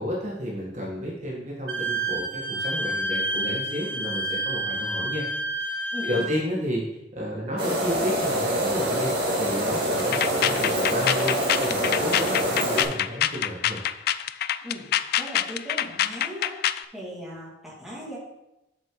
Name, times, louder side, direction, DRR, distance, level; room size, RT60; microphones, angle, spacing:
voice 1, 0.0-5.2 5.5-6.9 7.1-13.8, equal, 40° right, -4 dB, 1.6 m, -32 dB
Wind instrument woodwind instrument, 1.7-6.3, right 1 dB, 90° right, 1.1 m, -29 dB
voice 2, 5.9-6.2 14.6-14.9 15.2-16.5 16.9-18.2, equal, ahead, -6 dB, 2.3 m, -38 dB
sound 1, 7.6-12.8, equal, 55° right, 2.2 m, -25 dB
sound 2, 10.0-16.8, left 11 dB, 55° left, 0.3 m, -25 dB
7.8 x 6.3 x 3.9 m, 0.92 s
head